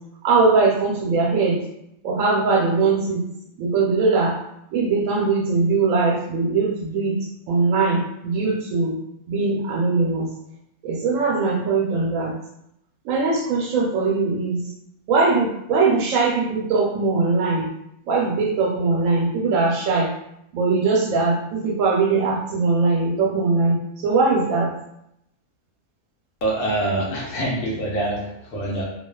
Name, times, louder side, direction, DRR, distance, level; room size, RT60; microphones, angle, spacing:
voice 1, 0.2-1.6 2.0-3.2 3.6-4.4 4.7-7.2 7.5-8.9 9.3-10.3 10.8-12.3 13.0-14.6 15.1-17.7 18.1-20.1 20.5-23.8 24.0-24.7, right 4 dB, 80° right, -2 dB, 1.0 m, -20 dB
voice 2, 26.4-28.8, right 1 dB, 75° left, -4 dB, 1.0 m, -25 dB
2.4 x 2.3 x 2.2 m, 0.78 s
omnidirectional pair, 1.4 m